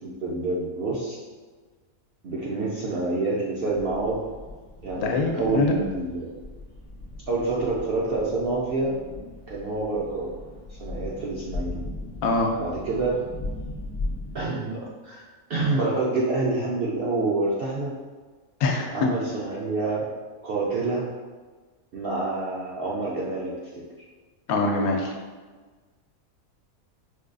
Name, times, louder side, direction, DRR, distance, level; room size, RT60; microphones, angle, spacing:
voice 1, 0.0-1.2 2.2-4.3 4.8-6.3 7.3-9.0 9.5-10.3 10.7-11.8 12.6-13.2 14.3-15.2 15.5-17.9 18.9-20.1 20.4-21.1 21.9-23.8, right 3 dB, 70° right, -6 dB, 0.5 m, -27 dB
sound 1, 3.7-14.5, left 2 dB, 45° left, 0.4 m, -38 dB
voice 2, 5.0-5.7 12.2-12.5 18.6-19.1 24.5-25.1, left 3 dB, 90° left, 1 dB, 1.1 m, -23 dB
4.5 x 2.3 x 2.5 m, 1.4 s
omnidirectional pair, 1.5 m